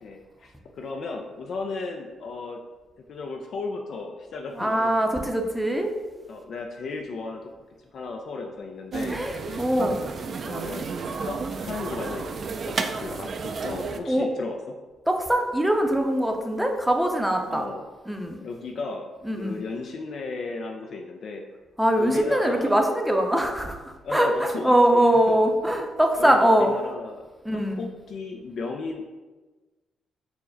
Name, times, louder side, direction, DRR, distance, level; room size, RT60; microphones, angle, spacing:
voice 1, 0.0-2.6 3.1-4.9 6.3-7.5 7.8-9.2 9.5-9.7 10.4-10.9 11.3-12.4 12.7-14.8 17.5-17.8 18.4-19.1 19.4-21.4 22.0-22.8 24.0-25.5 26.2-27.3 27.5-29.1, left 3 dB, 65° left, 2 dB, 0.4 m, -35 dB
voice 2, 4.6-5.9 9.1-10.0 14.1-14.3 15.1-17.6 18.1-18.4 19.2-19.6 21.8-23.8 24.1-26.7 27.4-27.8, right 1 dB, 5° right, 3 dB, 0.6 m, -22 dB
sound 1, 8.9-14.0, right 4 dB, 50° right, 0.3 m, -32 dB
4.6 x 2.1 x 3.8 m, 1.2 s
supercardioid pair, 65°, 0 cm